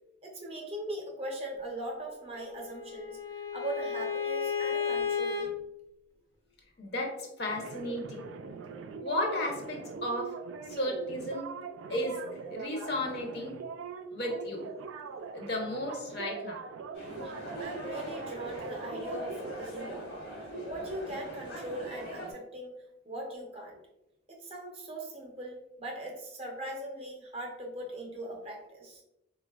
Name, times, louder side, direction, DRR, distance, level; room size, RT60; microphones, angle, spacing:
voice 1, 0.2-5.5 17.2-22.8 23.0-23.8 24.3-29.0, right 1 dB, 30° right, 0 dB, 0.6 m, -40 dB
Bowed string instrument, 2.3-5.5, left 6 dB, 20° left, 0.4 m, -33 dB
voice 2, 6.8-8.3 9.0-10.3 10.7-11.5 11.9-12.2 12.5-13.6 14.1-14.7 15.3-16.6, left 1 dB, 55° left, 1 dB, 0.6 m, -34 dB
sound 1, 7.5-19.9, right 5 dB, 85° right, 0.3 m, -42 dB
sound 2, 16.9-22.3, equal, 80° left, 1.1 m, -41 dB
3.9 x 2.2 x 2.2 m, 0.89 s
head